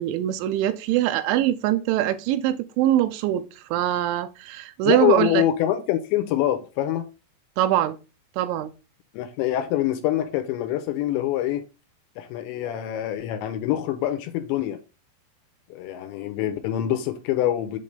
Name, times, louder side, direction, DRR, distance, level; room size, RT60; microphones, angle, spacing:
voice 1, 0.0-5.4 7.6-8.0 8.4-8.7, right 13 dB, 90° right, 3.0 m, -23 dB
voice 2, 4.8-7.1 9.1-11.6 12.2-14.8 15.7-17.8, left 12 dB, 85° left, 2.9 m, -25 dB
7.7 x 3.3 x 5.3 m
omnidirectional pair, 5.3 m